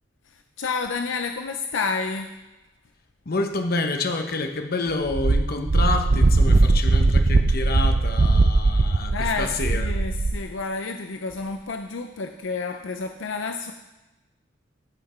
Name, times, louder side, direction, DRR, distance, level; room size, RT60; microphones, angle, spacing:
voice 1, 0.3-2.3 9.1-13.7, left 4 dB, 75° left, 5 dB, 0.6 m, -30 dB
voice 2, 3.3-10.0, left 3 dB, 50° left, 5 dB, 1.0 m, -28 dB
Wind, 5.1-10.4, right 2 dB, 45° right, 0.5 m, -19 dB
15.0 x 5.9 x 4.4 m, 1.0 s
head